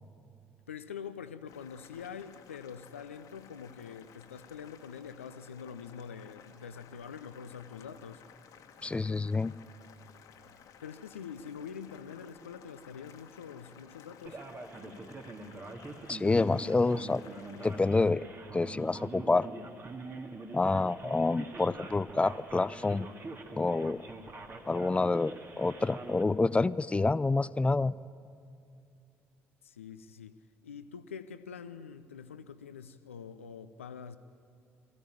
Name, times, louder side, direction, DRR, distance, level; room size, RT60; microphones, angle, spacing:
voice 1, 0.7-8.2 10.8-14.4 29.6-30.3 30.6-34.2, left 7 dB, 85° left, 12 dB, 0.6 m, -45 dB
Boiling, 1.5-17.9, left 8 dB, 55° left, 1.5 m, -56 dB
voice 2, 8.8-9.5 16.1-17.2 17.6-18.2 18.5-19.5 20.5-23.1 23.5-24.0 24.7-28.0, left 3 dB, 15° left, 19 dB, 0.5 m, -28 dB
Male speech man speaking, 14.3-26.2, right 2 dB, 35° right, 2.2 m, -45 dB
23.0 x 15.5 x 9.0 m, 2.5 s
figure-of-eight pair, 50°, 7 cm